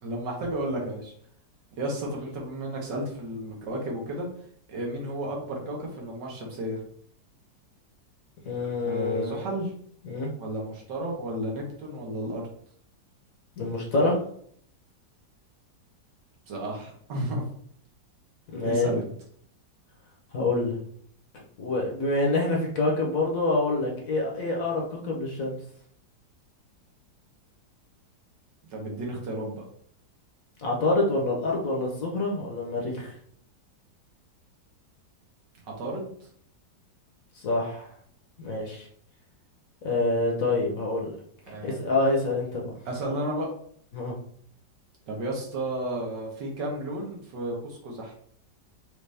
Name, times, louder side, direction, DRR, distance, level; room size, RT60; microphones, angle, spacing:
voice 1, 0.0-1.1 1.7-4.3 4.7-6.8 8.8-9.7 10.4-12.4 16.5-17.4 18.6-19.1 28.7-29.7 35.7-36.1 41.5-41.8 42.9-43.5 45.1-48.1, right 1 dB, 75° right, -1 dB, 1.7 m, -32 dB
voice 2, 8.4-9.4 10.0-10.3 13.6-14.2 18.5-18.9 20.3-20.8 21.6-25.6 30.6-33.1 37.3-37.9 38.4-38.9 39.8-41.1 41.6-42.7 43.9-44.2, left 2 dB, 55° left, -1 dB, 1.1 m, -26 dB
5.0 x 2.7 x 3.3 m, 0.63 s
omnidirectional pair, 1.9 m